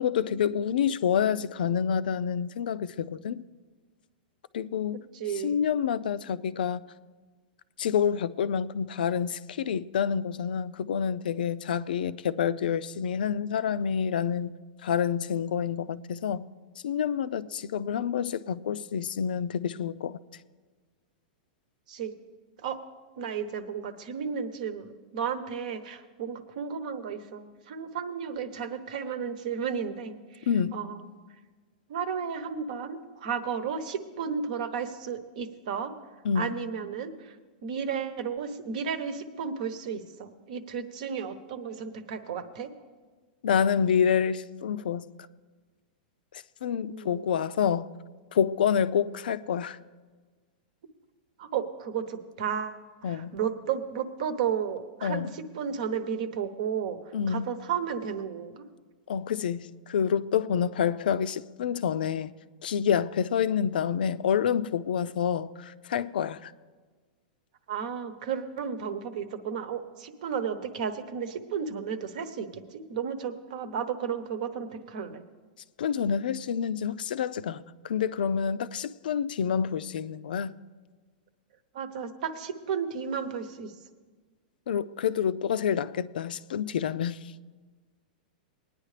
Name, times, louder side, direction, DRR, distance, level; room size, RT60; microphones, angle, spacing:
voice 1, 0.0-3.4 4.5-5.0 5.4-6.8 7.8-14.5 14.8-16.5 16.8-20.2 30.5-30.8 36.2-36.5 43.4-45.1 46.6-47.9 48.3-49.8 53.0-53.3 55.0-55.3 57.1-57.4 59.1-62.3 62.6-66.5 75.8-80.6 84.7-87.2, left 8 dB, 85° left, 0.4 m, -28 dB
voice 2, 5.1-5.6 21.9-22.1 22.6-22.8 23.2-31.2 31.9-35.9 36.3-37.4 37.6-42.7 46.9-47.4 51.4-58.6 67.7-75.2 81.7-83.7, right 7 dB, 60° right, 1.0 m, -33 dB
20.0 x 9.9 x 3.3 m
supercardioid pair, 165°, 5 cm